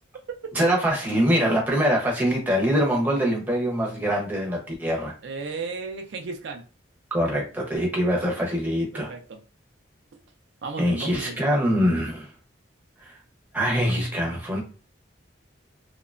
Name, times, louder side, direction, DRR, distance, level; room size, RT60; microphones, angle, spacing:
voice 1, 0.5-5.1 7.1-9.1 10.8-12.3 13.0-13.1 13.5-14.6, equal, 10° right, 0.7 m, -24 dB
voice 2, 5.2-6.6 8.9-9.4 10.6-11.4, right 4 dB, 65° right, 0.4 m, -34 dB
2.8 x 2.1 x 2.4 m
head